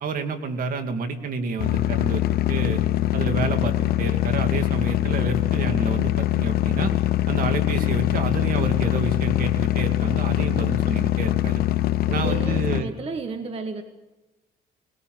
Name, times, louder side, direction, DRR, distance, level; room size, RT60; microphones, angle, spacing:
voice 1, 0.0-2.8 3.1-6.9 7.3-11.6 12.1-12.9, right 4 dB, 55° right, 7 dB, 2.6 m, -29 dB
sound 1, 1.6-12.8, left 14 dB, 65° left, 0.7 m, -23 dB
sound 2, 4.3-9.2 9.6-10.6 10.9-11.0, right 1 dB, 75° right, 7.9 m, -54 dB
voice 2, 12.1-13.8, right 4 dB, 35° right, 7 dB, 1.6 m, -33 dB
21.0 x 20.0 x 7.9 m, 1.0 s
cardioid pair, 110°, 17 cm